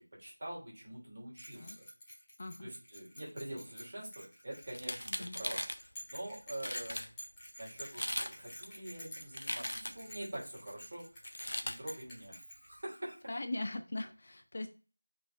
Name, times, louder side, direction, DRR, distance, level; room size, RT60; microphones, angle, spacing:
voice 1, 0.2-1.9 2.6-5.6 6.1-7.1 7.6-11.0 11.6-13.2, right 1 dB, 35° right, -3 dB, 3.3 m, -45 dB
Bell, 1.4-13.0, equal, 5° left, 1.9 m, -50 dB
voice 2, 2.4-2.7 5.1-5.4 13.3-14.7, left 2 dB, 35° left, 8 dB, 0.5 m, -40 dB
sound 1, 4.7-5.8 6.3-6.4 6.6-7.1 7.8-8.3 8.6-10.1 11.2-11.8, left 1 dB, 70° left, 0.9 m, -39 dB
5.9 x 4.8 x 3.5 m, 0.36 s
figure-of-eight pair, 175°, 0 cm